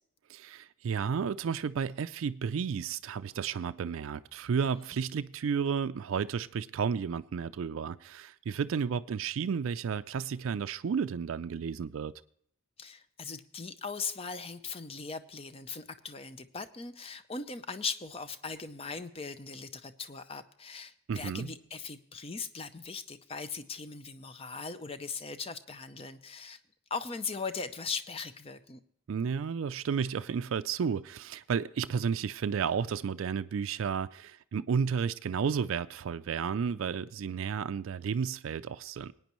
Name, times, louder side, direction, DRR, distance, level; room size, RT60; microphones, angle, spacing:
voice 1, 0.3-12.1 21.1-21.5 29.1-39.1, right 6 dB, 70° right, 0.4 m, -32 dB
voice 2, 12.8-26.6 26.9-28.8, left 5 dB, 25° left, 0.5 m, -39 dB
20.0 x 9.4 x 3.0 m
head